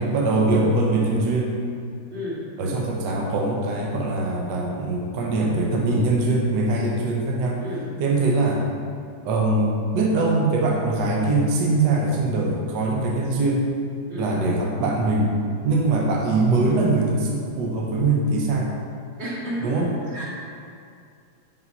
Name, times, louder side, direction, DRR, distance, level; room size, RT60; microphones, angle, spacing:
voice 1, 0.0-1.6 2.6-7.7 8.0-8.6 9.2-13.7 14.1-15.3 15.6-18.8 19.6-19.9, right 2 dB, 65° right, -1 dB, 1.3 m, -22 dB
voice 2, 2.1-2.4 7.6-7.9 14.1-14.3 19.2-20.2, equal, 35° right, -7 dB, 2.0 m, -31 dB
5.5 x 5.5 x 5.3 m, 2.3 s
omnidirectional pair, 2.2 m